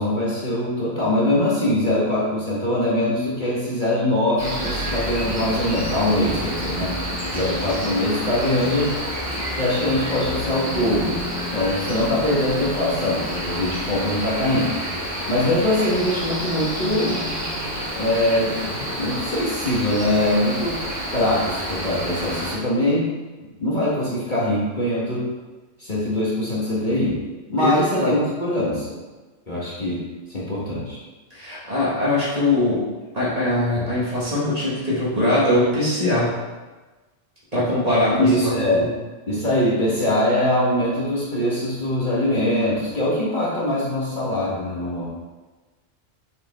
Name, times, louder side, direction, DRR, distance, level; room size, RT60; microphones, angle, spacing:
voice 1, 0.0-7.0 7.3-9.0 9.6-11.3 11.5-14.8 15.3-17.2 18.0-18.6 19.0-20.8 21.1-23.1 23.6-25.3 25.8-27.2 27.5-29.0 29.5-30.0 30.3-31.0 38.2-38.9 39.3-45.1, left 1 dB, 35° left, -7 dB, 1.8 m, -22 dB
Cricket, 4.4-22.6, equal, 15° right, 1.4 m, -29 dB
voice 2, 27.6-28.1 31.3-32.8 33.1-36.3 37.5-38.9, left 1 dB, 30° right, -8 dB, 2.0 m, -21 dB
6.9 x 5.1 x 3.7 m, 1.2 s
omnidirectional pair, 1.3 m